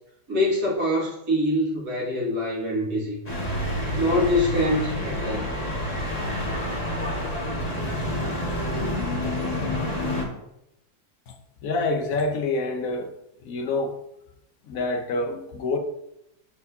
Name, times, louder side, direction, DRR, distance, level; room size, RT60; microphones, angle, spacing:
voice 1, 0.3-3.2 3.9-5.5, left 1 dB, 85° right, 2.7 m, -24 dB
sound 1, 3.3-10.2, left 1 dB, 25° left, 1.5 m, -28 dB
voice 2, 11.6-13.1 13.4-14.0 14.7-15.8, left 3 dB, 65° left, 1.2 m, -26 dB
11.5 x 4.6 x 2.7 m
omnidirectional pair, 1.6 m